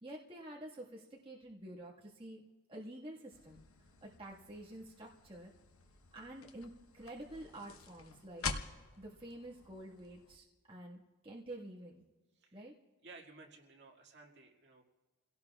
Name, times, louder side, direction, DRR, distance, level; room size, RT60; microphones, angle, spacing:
voice 1, 0.0-3.6 4.0-5.5 6.1-8.5 9.0-12.0 12.5-12.7, right 1 dB, 25° right, -4 dB, 1.6 m, -49 dB
sound 1, 3.3-10.4, left 4 dB, 80° left, 1.1 m, -47 dB
voice 2, 13.0-14.8, right 3 dB, 55° right, 0 dB, 2.0 m, -56 dB
29.5 x 17.5 x 2.4 m, 1.3 s
head